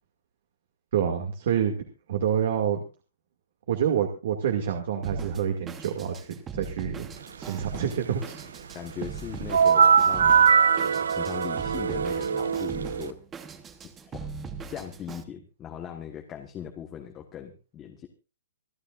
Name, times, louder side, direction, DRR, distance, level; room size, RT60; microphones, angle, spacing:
voice 1, 0.9-1.8 2.1-2.8 3.7-7.1 7.4-8.3, right 8 dB, 50° right, 4 dB, 2.2 m, -27 dB
Drum kit, 5.0-15.2, right 5 dB, 10° right, 1.0 m, -40 dB
voice 2, 8.7-10.5 10.8-13.2 14.0-14.2 14.7-18.1, left 9 dB, 15° left, 3 dB, 1.3 m, -39 dB
sound 1, 9.5-13.1, right 6 dB, 90° right, 0.6 m, -21 dB
26.5 x 10.5 x 2.5 m, 0.33 s
hypercardioid pair, 170°, 0 cm